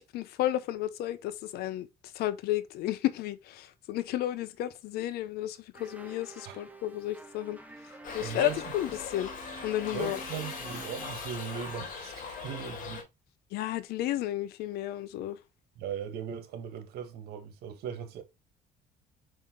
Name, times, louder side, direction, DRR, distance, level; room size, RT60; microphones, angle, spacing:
voice 1, 0.0-1.9 2.1-7.6 8.1-9.3 9.6-10.2 13.5-15.4, left 14 dB, 85° left, 0.9 m, -32 dB
sound 1, 5.7-11.1, right 2 dB, 10° right, 1.5 m, -49 dB
Shout / Livestock farm animals working animals, 8.0-13.0, left 5 dB, 60° left, 3.5 m, -40 dB
voice 2, 8.2-8.6 9.9-13.1 15.8-18.2, right 8 dB, 85° right, 1.8 m, -38 dB
5.7 x 5.4 x 3.9 m
cardioid pair, 110°, 16 cm